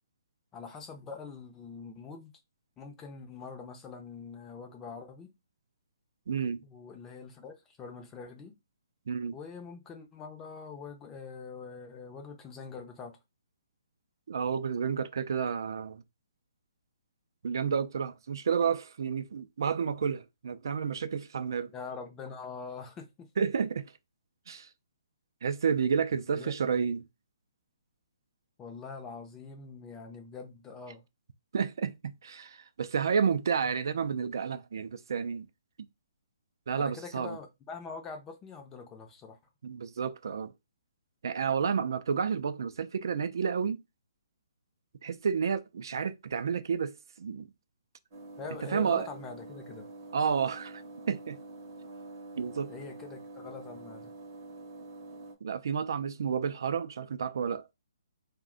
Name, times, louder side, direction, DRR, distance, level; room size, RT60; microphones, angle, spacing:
voice 1, 0.5-2.3 2.8-5.3 6.6-8.5 9.3-13.2 21.7-23.3 26.3-26.5 28.6-31.0 36.7-39.4 48.4-49.9 50.2-50.3 52.7-54.1, left 5 dB, 15° left, 0.5 m, -44 dB
voice 2, 6.3-6.6 9.1-9.4 14.3-16.0 17.4-21.7 23.4-23.9 24.5-24.7 25.4-27.0 31.5-35.5 36.7-37.4 39.6-40.5 41.2-43.8 45.0-47.5 48.7-49.1 50.1-50.8 51.1-51.4 52.4-52.7 55.4-57.6, right 6 dB, 65° right, 0.3 m, -30 dB
sound 1, 48.1-55.3, right 2 dB, 30° right, 0.7 m, -46 dB
2.5 x 2.1 x 3.6 m
hypercardioid pair, 160°, 2 cm